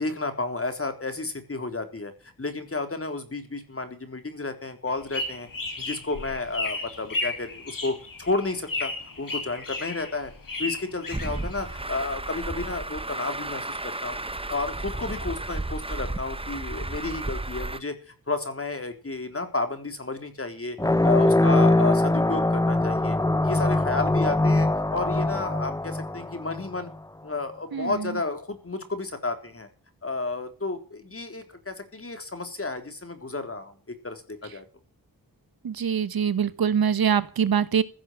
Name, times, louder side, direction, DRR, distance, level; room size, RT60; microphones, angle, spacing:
voice 1, 0.0-5.5 5.8-8.9 9.2-10.3 10.6-14.2 14.5-20.8 21.0-23.2 23.4-26.9 27.2-29.7 30.0-34.7, left 3 dB, 40° left, 7 dB, 4.0 m, -32 dB
sound 1, 4.9-11.9, left 2 dB, 65° left, 5.6 m, -34 dB
Truck, 11.1-17.8, right 2 dB, 15° right, 1.2 m, -33 dB
sound 2, 20.8-26.9, left 2 dB, 10° left, 0.8 m, -22 dB
voice 2, 35.6-37.8, right 7 dB, 80° right, 15 dB, 1.3 m, -23 dB
16.0 x 7.9 x 6.5 m, 0.41 s
cardioid pair, 55°, 36 cm